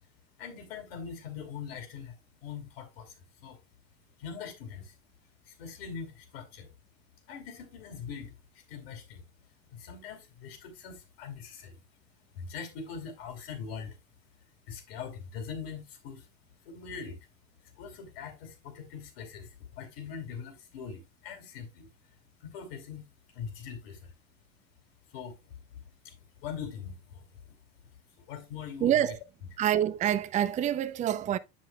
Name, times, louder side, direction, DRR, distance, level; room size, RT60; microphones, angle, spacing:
voice 1, 0.4-2.2 2.4-3.6 4.2-4.9 5.5-6.7 7.3-9.2 9.7-11.8 12.3-14.0 14.7-16.3 16.6-17.2 17.8-21.9 22.4-23.1 23.3-24.1 25.1-25.5 26.0-27.6 28.2-29.1, left 6 dB, 90° left, 3.1 m, -42 dB
voice 2, 28.8-29.2 29.6-31.4, right 10 dB, 25° right, 0.4 m, -26 dB
8.1 x 7.5 x 2.3 m
supercardioid pair, 125°, 29 cm